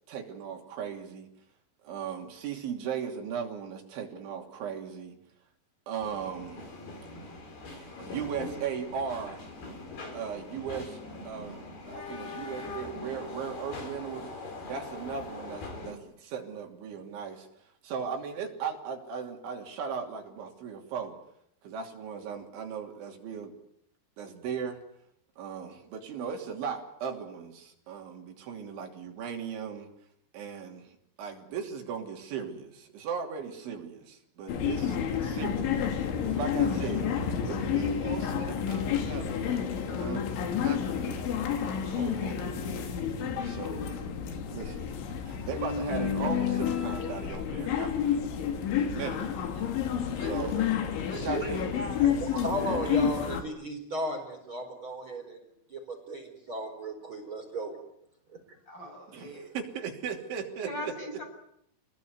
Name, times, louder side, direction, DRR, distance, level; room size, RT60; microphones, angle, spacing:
voice 1, 0.1-1.3 1.8-5.2 5.9-6.6 7.7-9.4 10.1-11.0 11.3-11.6 11.9-14.3 14.7-17.5 17.8-21.2 21.6-23.6 24.2-24.8 25.4-29.9 30.3-35.0 35.2-35.9 36.2-37.1 37.4-39.5 39.8-40.3 40.6-42.9 43.4-43.9 44.5-45.0 45.3-48.3 48.7-49.2 50.2-50.6 51.2-51.7 59.1-60.9, right 7 dB, 75° right, 2 dB, 5.4 m, -37 dB
sound 1, 6.0-15.9, left 3 dB, 55° left, 7.0 m, -42 dB
sound 2, 34.5-53.4, left 8 dB, 75° left, 4.8 m, -30 dB
voice 2, 50.2-50.7 51.0-52.0 58.7-59.5 60.6-61.2, equal, 20° left, 2 dB, 7.6 m, -38 dB
voice 3, 52.0-55.4 55.7-57.7, right 1 dB, 25° right, 3 dB, 4.8 m, -35 dB
29.0 x 20.5 x 9.6 m, 0.74 s
omnidirectional pair, 5.4 m